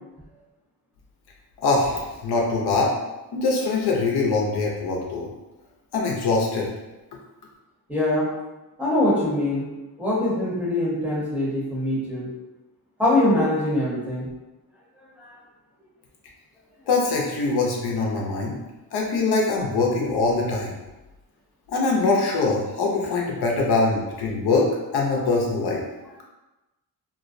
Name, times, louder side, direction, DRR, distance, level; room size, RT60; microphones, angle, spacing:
voice 1, 1.6-2.9 3.3-5.3 5.9-6.7 16.9-18.6 18.9-20.8 21.7-25.8, left 3 dB, 70° left, -1 dB, 0.6 m, -23 dB
voice 2, 7.9-8.3 8.8-9.7 10.0-12.3 13.0-14.3 15.2-15.4, left 1 dB, 5° right, -8 dB, 0.8 m, -23 dB
2.4 x 2.0 x 2.5 m, 1.1 s
cardioid pair, 115°, 40 cm